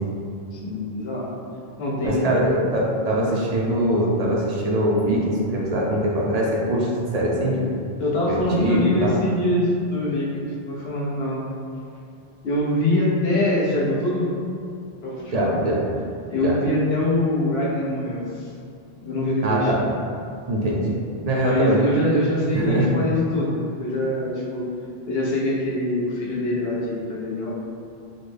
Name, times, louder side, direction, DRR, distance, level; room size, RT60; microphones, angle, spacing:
voice 1, 0.5-1.3 1.8-2.3 8.0-11.4 12.4-14.3 15.0-15.5 16.3-18.5 19.0-19.7 21.4-24.6 25.0-27.5, left 1 dB, 70° left, -6 dB, 1.0 m, -24 dB
voice 2, 2.0-7.7 8.3-9.1 15.3-15.8 16.4-16.5 19.4-19.8 20.5-21.0 21.2-21.8 22.5-22.9, right 1 dB, 45° right, -4 dB, 0.6 m, -22 dB
3.9 x 2.1 x 3.3 m, 2.5 s
omnidirectional pair, 1.1 m